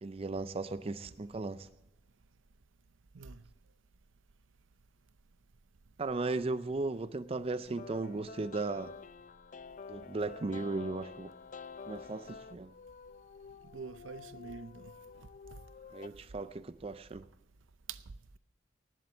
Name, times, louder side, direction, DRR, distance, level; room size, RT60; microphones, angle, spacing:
voice 1, 0.0-1.7 6.0-8.9 9.9-11.3 11.9-12.7 15.9-17.3, right 3 dB, 30° right, 0.4 m, -36 dB
sound 1, 7.7-16.1, left 5 dB, 40° left, 0.4 m, -49 dB
voice 2, 13.7-14.9 17.9-18.0, right 5 dB, 85° right, 0.7 m, -45 dB
18.5 x 7.6 x 7.0 m
head